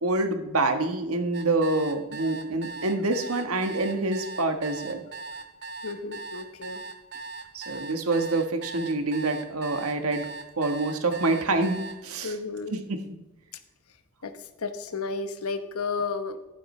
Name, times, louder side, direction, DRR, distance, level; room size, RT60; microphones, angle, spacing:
voice 1, 0.0-5.0 7.5-10.3 10.6-12.3 12.7-13.0, right 2 dB, 85° right, 6 dB, 1.3 m, -26 dB
sound 1, 1.3-12.0, right 3 dB, 50° right, 1.1 m, -39 dB
voice 2, 5.8-6.8 12.2-12.8 14.2-16.4, left 4 dB, 85° left, 10 dB, 1.0 m, -32 dB
13.5 x 11.5 x 3.2 m, 1.0 s
head